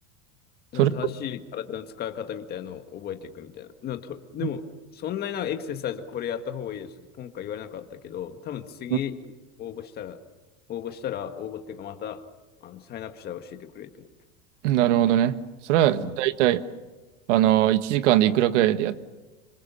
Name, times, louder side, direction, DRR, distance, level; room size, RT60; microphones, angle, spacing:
voice 1, 0.7-4.7 4.9-9.2 9.6-10.2 10.7-12.3 12.6-14.1 15.9-16.2, left 9 dB, 25° left, 8 dB, 1.7 m, -35 dB
voice 2, 14.6-15.4 15.6-16.6 17.3-19.0, right 13 dB, 75° right, 12 dB, 1.6 m, -20 dB
27.0 x 26.0 x 7.0 m, 1.1 s
supercardioid pair, 165°, 36 cm